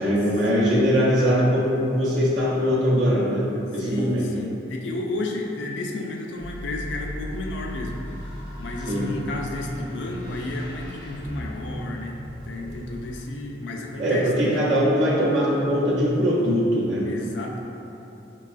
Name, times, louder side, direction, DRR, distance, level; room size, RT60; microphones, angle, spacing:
voice 1, 0.0-4.3 8.9-9.1 14.0-17.1, equal, 85° right, -8 dB, 0.7 m, -21 dB
voice 2, 0.5-0.9 3.8-8.0 8.6-14.8 17.0-17.6, left 2 dB, 80° left, 1 dB, 0.4 m, -32 dB
sound 1, 6.4-13.3, equal, 25° right, 0.6 m, -37 dB
4.6 x 2.3 x 2.4 m, 2.9 s
head